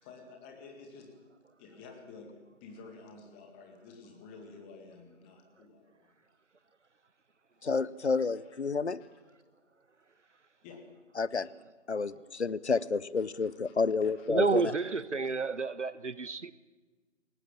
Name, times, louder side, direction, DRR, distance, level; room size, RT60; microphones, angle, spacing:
voice 1, 0.0-1.2 1.6-6.1 8.0-8.6 9.0-9.1 10.6-11.0 11.4-11.5 13.4-13.8 14.0-14.3 14.5-14.7, left 4 dB, 10° left, 1.9 m, -51 dB
voice 2, 7.6-9.0 11.2-11.5 11.9-14.7, left 4 dB, 60° left, 0.9 m, -30 dB
voice 3, 14.3-16.5, right 4 dB, 70° right, 1.3 m, -30 dB
27.5 x 19.0 x 7.1 m
figure-of-eight pair, 150°, 37 cm